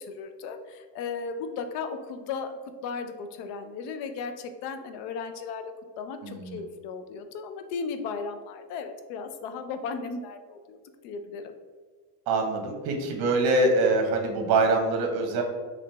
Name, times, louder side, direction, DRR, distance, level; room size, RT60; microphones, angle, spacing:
voice 1, 0.1-2.5 2.8-10.8 11.0-11.5, left 5 dB, 70° left, 8 dB, 0.6 m, -36 dB
voice 2, 6.2-6.6 12.3-15.4, right 2 dB, 55° right, 4 dB, 1.0 m, -24 dB
3.9 x 3.3 x 3.2 m, 1.5 s
cardioid pair, 130°, 44 cm